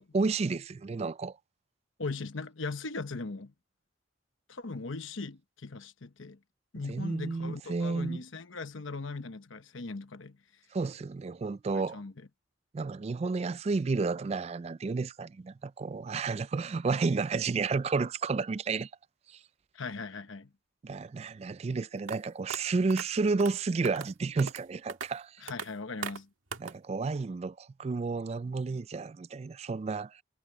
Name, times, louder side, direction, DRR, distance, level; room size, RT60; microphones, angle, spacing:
voice 1, 0.0-1.4 6.9-8.2 10.7-12.0 12.7-18.9 19.3-19.4 20.8-25.4 26.6-30.2, right 4 dB, 30° right, 0.3 m, -31 dB
voice 2, 2.0-3.5 4.5-6.4 6.7-10.4 11.7-12.1 19.7-20.5 25.4-26.3, left 3 dB, 80° left, 1.1 m, -39 dB
Cigarette pack dropped, 22.1-22.2 22.5-22.6 22.9-23.0 23.4-23.5 23.8-24.1 24.4-24.6 24.9-25.1 25.5-25.7 26.0-26.2 26.5-26.7, right 5 dB, 90° right, 1.9 m, -38 dB
head